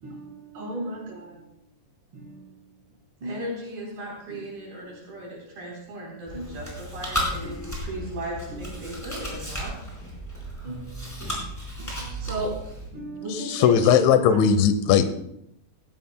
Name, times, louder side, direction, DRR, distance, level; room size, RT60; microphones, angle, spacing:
voice 1, 0.0-1.5 2.1-2.6 3.2-3.4 4.3-4.4 4.9-5.0 6.3-6.6 7.4-7.8 8.5-9.2 10.6-11.3 11.8-12.5 12.9-14.4, right 1 dB, 30° right, -6 dB, 4.5 m, -36 dB
voice 2, 3.2-9.7, right 1 dB, 60° right, -4 dB, 5.4 m, -37 dB
Chewing mastication, 6.3-12.9, equal, 5° left, 4.1 m, -34 dB
voice 3, 13.3-15.2, left 8 dB, 85° left, 10 dB, 3.2 m, -19 dB
17.5 x 16.5 x 2.2 m, 0.75 s
omnidirectional pair, 5.2 m